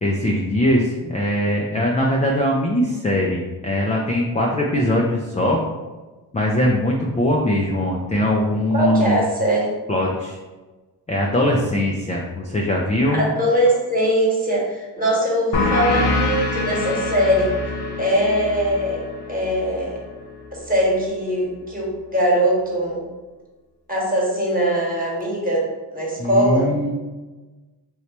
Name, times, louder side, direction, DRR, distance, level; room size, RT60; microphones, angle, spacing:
voice 1, 0.0-5.6 6.3-9.2 9.9-10.4 11.1-13.2 26.2-26.9, left 1 dB, 15° left, -1 dB, 0.4 m, -21 dB
voice 2, 8.7-9.7 13.1-17.5 18.0-19.0 19.3-20.0 20.5-23.0 23.9-26.7, equal, 20° right, -4 dB, 1.3 m, -21 dB
sound 1, 15.5-20.7, left 2 dB, 55° left, 0.7 m, -25 dB
3.0 x 2.7 x 3.2 m, 1.2 s
supercardioid pair, 50°, 48 cm